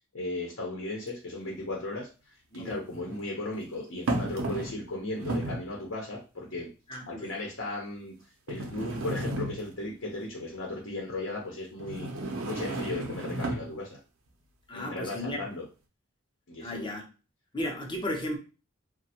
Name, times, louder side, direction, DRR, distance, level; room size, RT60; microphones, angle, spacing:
voice 1, 0.1-2.1 2.5-6.7 7.1-8.1 8.5-12.1 12.4-14.0 14.7-15.6 16.5-16.9, left 2 dB, 65° left, -1 dB, 0.7 m, -36 dB
sound 1, 1.1-1.2 2.5-3.2 4.1-4.9 5.2-5.7 6.5-6.6 7.4-7.5 8.5-9.9 11.8-13.7, right 1 dB, 85° right, 0.6 m, -33 dB
voice 2, 6.9-7.3 14.7-15.4 16.6-17.1 17.5-18.4, left 1 dB, 25° left, 3 dB, 0.6 m, -34 dB
3.1 x 2.1 x 2.8 m, 0.33 s
head